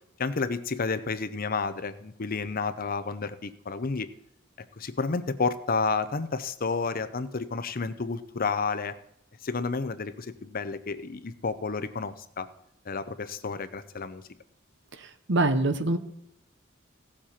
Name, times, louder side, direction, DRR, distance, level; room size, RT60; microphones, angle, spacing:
voice 1, 0.2-4.1 4.8-8.9 9.4-12.5 12.9-14.2, left 4 dB, 50° left, 13 dB, 0.7 m, -31 dB
voice 2, 15.3-16.0, right 2 dB, 65° right, 10 dB, 1.0 m, -23 dB
17.0 x 7.5 x 4.4 m, 0.78 s
head